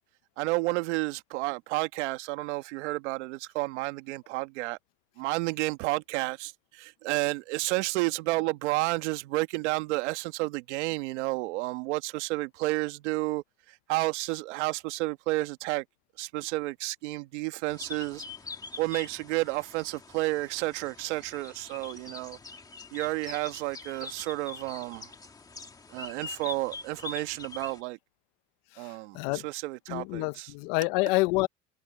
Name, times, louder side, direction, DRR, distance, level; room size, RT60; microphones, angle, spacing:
voice 1, 0.4-4.8 5.2-13.4 13.9-15.8 16.2-18.2 18.8-22.4 22.9-25.1 25.9-28.0 28.8-30.5, right 21 dB, 80° right, 1.6 m, -31 dB
sound 1, 17.7-27.8, left 4 dB, 10° left, 2.1 m, -44 dB
voice 2, 29.9-31.5, left 23 dB, 55° left, 0.7 m, -27 dB
cardioid pair, 175°, 35 cm